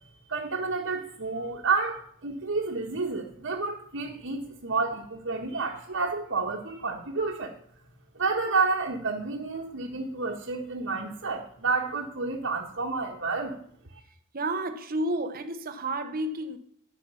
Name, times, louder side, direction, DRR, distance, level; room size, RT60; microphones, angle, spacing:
voice 1, 0.3-7.5 8.1-13.6, right 4 dB, 60° right, 1.4 m, -30 dB
voice 2, 14.3-16.6, right 1 dB, 45° right, 1.0 m, -31 dB
11.0 x 8.2 x 5.6 m
head